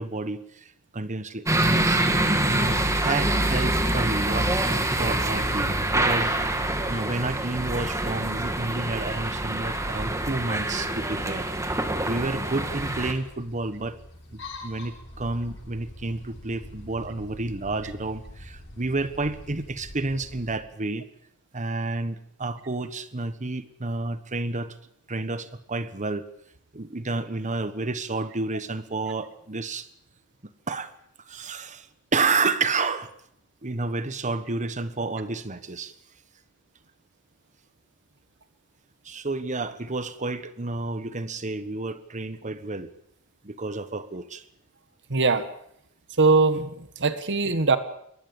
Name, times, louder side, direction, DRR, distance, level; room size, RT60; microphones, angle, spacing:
voice 1, 0.0-2.0 2.5-4.5 5.0-6.4 6.9-11.5 11.8-14.0 14.3-21.0 21.5-24.7 25.1-26.3 26.7-29.9 30.7-30.9 31.2-31.9 32.1-33.1 33.6-35.9 39.0-42.9 43.4-44.4, right 3 dB, 35° right, 13 dB, 1.3 m, -30 dB
sound 1, 1.5-13.1, right 1 dB, 15° right, 2.0 m, -25 dB
sound 2, 12.1-20.6, left 1 dB, 55° left, 7.7 m, -44 dB
voice 2, 45.1-45.5 46.2-47.8, right 3 dB, 55° right, 11 dB, 1.5 m, -21 dB
22.5 x 19.0 x 7.1 m, 0.71 s
head